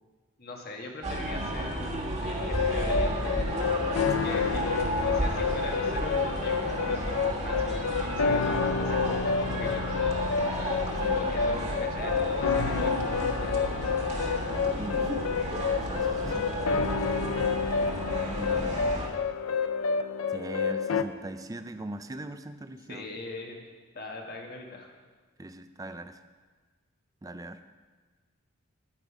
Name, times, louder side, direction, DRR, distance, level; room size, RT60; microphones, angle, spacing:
voice 1, 0.4-3.3 4.2-10.0 11.1-14.2 16.2-16.4 22.9-23.6 23.9-24.9, left 3 dB, 45° left, 1 dB, 1.5 m, -41 dB
sound 1, 1.0-19.1, right 1 dB, 30° right, 1.4 m, -32 dB
sound 2, 2.4-21.0, left 5 dB, 90° left, 0.5 m, -29 dB
voice 2, 4.1-4.4 9.4-9.6 10.4-11.3 14.7-15.1 15.9-16.4 17.9-19.1 20.3-23.1 25.4-26.2 27.2-27.6, right 1 dB, 15° right, 9 dB, 0.4 m, -40 dB
9.9 x 8.9 x 4.9 m, 1.4 s
head